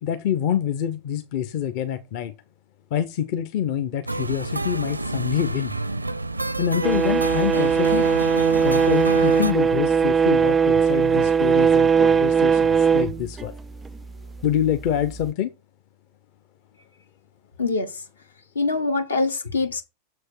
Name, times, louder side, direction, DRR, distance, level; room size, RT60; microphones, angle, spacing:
voice 1, 0.0-2.3 2.9-5.8 6.6-8.1 8.6-13.6 14.4-15.5, left 9 dB, 45° left, 0.8 m, -26 dB
sound 1, 4.1-9.5, right 2 dB, 85° right, 0.5 m, -28 dB
sound 2, 6.8-14.0 15.1-15.2, right 6 dB, 15° right, 0.3 m, -19 dB
voice 2, 17.6-18.0 18.5-19.8, left 3 dB, 75° left, 1.4 m, -24 dB
7.0 x 6.5 x 4.5 m
figure-of-eight pair, 90°, 0 cm